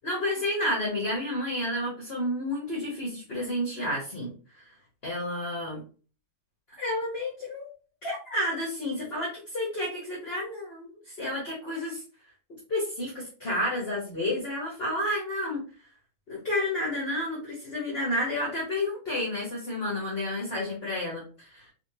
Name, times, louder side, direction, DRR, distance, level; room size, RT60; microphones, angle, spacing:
voice 1, 0.0-4.7 5.0-5.8 6.8-7.7 8.0-12.0 12.5-15.6 16.3-21.7, left 1 dB, 40° left, -4 dB, 0.9 m, -31 dB
3.4 x 3.3 x 2.7 m, 0.38 s
omnidirectional pair, 2.2 m